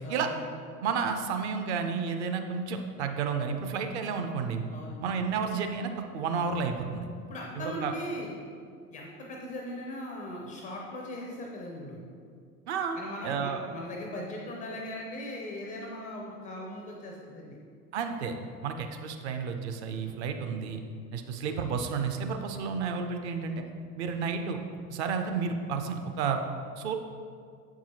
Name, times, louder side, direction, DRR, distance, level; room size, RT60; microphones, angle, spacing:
voice 1, 0.0-0.4 4.7-5.1 7.2-8.3 8.9-12.0 12.9-17.6, left 1 dB, 20° left, -1 dB, 0.4 m, -39 dB
voice 2, 0.8-4.6 5.0-7.1 7.6-7.9 12.7-13.0 13.2-13.6 17.9-18.4 18.6-20.8 21.1-23.6 24.0-24.6 24.9-26.4 26.8-26.9, right 5 dB, 45° right, 6 dB, 0.5 m, -31 dB
7.1 x 4.7 x 2.9 m, 2.2 s
figure-of-eight pair, 85°, 47 cm